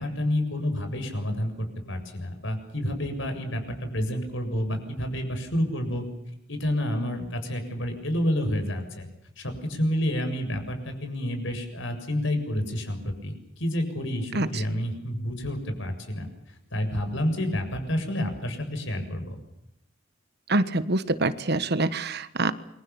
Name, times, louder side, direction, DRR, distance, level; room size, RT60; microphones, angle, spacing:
voice 1, 0.0-1.5 1.9-6.0 6.5-9.1 9.4-16.3 16.7-19.4, equal, 60° left, 7 dB, 7.3 m, -29 dB
voice 2, 20.5-22.5, right 2 dB, 50° right, 13 dB, 1.4 m, -25 dB
28.5 x 24.5 x 7.2 m, 0.79 s
head